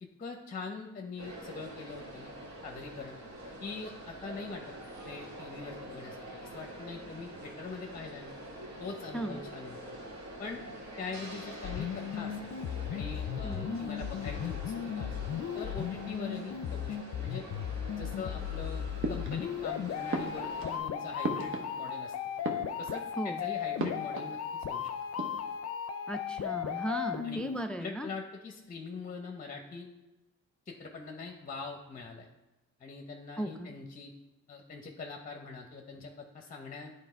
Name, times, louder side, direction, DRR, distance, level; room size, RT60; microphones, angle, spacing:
voice 1, 0.0-2.3 2.6-3.2 3.6-4.8 5.0-8.4 8.8-9.8 10.4-10.6 11.0-12.4 12.9-15.3 15.5-17.5 18.0-22.1 22.8-24.9 27.2-27.4 27.8-29.9 30.7-32.3 32.8-34.1 34.5-36.9, left 4 dB, 25° left, 3 dB, 0.8 m, -43 dB
sound 1, 1.2-20.8, right 1 dB, 65° right, 2.2 m, -45 dB
sound 2, 11.6-27.6, left 9 dB, 55° left, 0.6 m, -36 dB
voice 2, 13.4-13.8 23.2-23.4 26.1-28.1 33.4-33.7, right 1 dB, 5° left, 8 dB, 0.3 m, -36 dB
sound 3, 19.0-19.7 20.1-22.1 22.3-23.2 23.8-24.8 25.0-25.6, right 2 dB, 45° right, 1.0 m, -38 dB
8.9 x 3.3 x 4.4 m, 1.0 s
cardioid pair, 90°, 30 cm